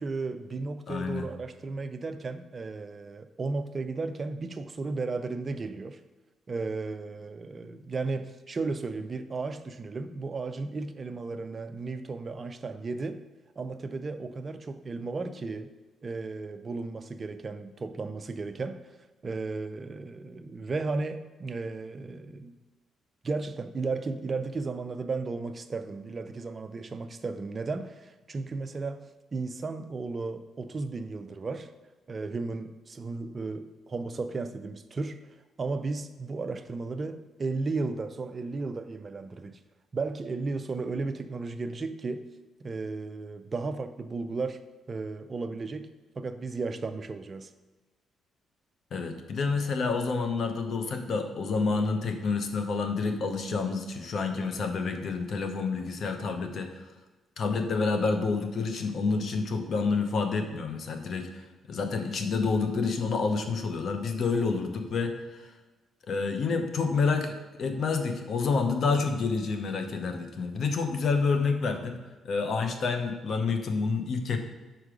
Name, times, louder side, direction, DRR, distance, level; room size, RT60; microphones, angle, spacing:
voice 1, 0.0-6.0 6.5-13.2 13.6-15.7 16.0-18.8 19.2-22.5 23.2-31.7 32.1-35.2 35.6-39.6 39.9-42.3 42.6-44.6 44.9-45.9 46.2-47.5, right 3 dB, 35° right, 9 dB, 0.4 m, -34 dB
voice 2, 0.9-1.3 48.9-56.8 57.4-65.1 65.4-65.5 66.1-72.0 72.2-74.4, left 4 dB, 60° left, 6 dB, 0.7 m, -28 dB
5.1 x 4.5 x 4.9 m, 1.2 s
cardioid pair, 90°, 0 cm